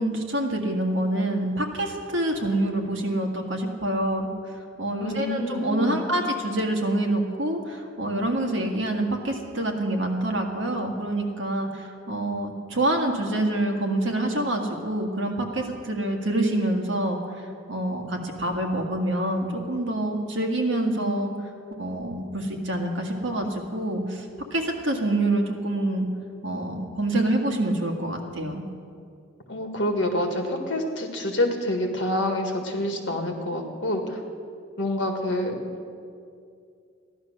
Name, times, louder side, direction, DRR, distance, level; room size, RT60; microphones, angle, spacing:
voice 1, 0.0-21.3 21.8-26.1 26.4-28.6, right 1 dB, 65° right, 2 dB, 1.8 m, -26 dB
voice 2, 5.0-6.1 29.5-34.2 34.8-35.6, left 1 dB, 60° left, 3 dB, 1.8 m, -27 dB
15.0 x 11.0 x 6.5 m, 2.3 s
head